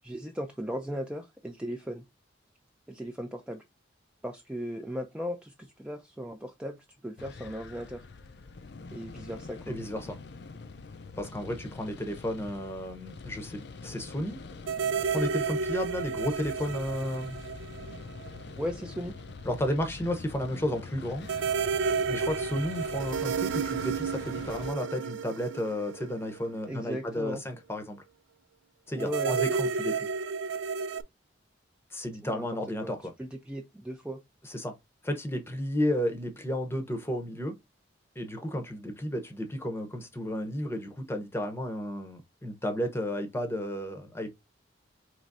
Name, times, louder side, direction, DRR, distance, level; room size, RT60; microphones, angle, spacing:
voice 1, 0.0-2.0 2.9-3.6 4.2-8.0 8.9-9.8 18.6-19.1 26.7-27.4 28.9-29.4 32.2-32.5 32.8-32.9 33.2-34.2, equal, 5° right, 0.4 m, -37 dB
sound 1, 7.2-24.7, left 4 dB, 60° left, 0.5 m, -45 dB
voice 2, 9.7-10.2 11.2-14.4 15.0-17.4 19.4-21.3 22.1-28.0 28.9-30.1 31.9-33.1 34.4-34.7 35.0-37.5 38.2-44.3, equal, 15° left, 0.8 m, -33 dB
sound 2, 14.7-18.4 18.7-18.8 21.3-26.7 29.0-31.0, right 5 dB, 80° right, 0.4 m, -31 dB
4.7 x 3.1 x 2.6 m
head